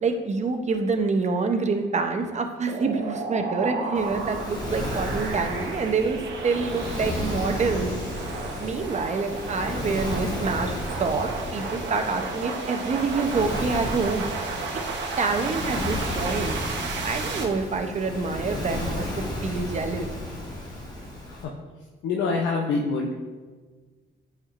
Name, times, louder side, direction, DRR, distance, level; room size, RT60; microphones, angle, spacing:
voice 1, 0.0-6.2 6.4-7.9 8.6-14.2 15.2-16.6 17.0-20.1, right 4 dB, 35° right, 5 dB, 0.7 m, -27 dB
sound 1, 2.7-17.4, right 3 dB, 65° right, 1.1 m, -33 dB
Waves surf, 3.9-21.4, left 1 dB, 20° left, 1.4 m, -33 dB
voice 2, 22.0-23.1, left 4 dB, 70° left, 0 dB, 0.7 m, -25 dB
8.7 x 4.4 x 2.5 m, 1.4 s
cardioid pair, 90°, 20 cm